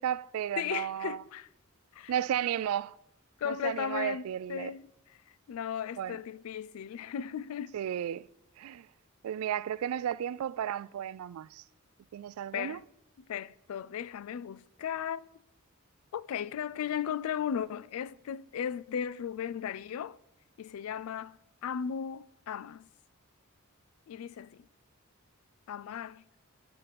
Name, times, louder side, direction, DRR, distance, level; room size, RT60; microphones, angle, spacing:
voice 1, 0.0-1.2 2.1-3.0 3.4-4.7 6.0-6.2 7.7-8.3 8.6-8.9 9.2-11.6 12.1-12.8, right 10 dB, 90° right, 0.3 m, -33 dB
voice 2, 0.6-1.5 1.9-2.1 3.4-4.8 5.5-7.8 12.5-12.8 13.3-15.3 16.1-20.2 20.6-22.9 24.1-24.7 25.7-26.2, left 8 dB, 80° left, 0.3 m, -36 dB
10.5 x 6.6 x 4.1 m
head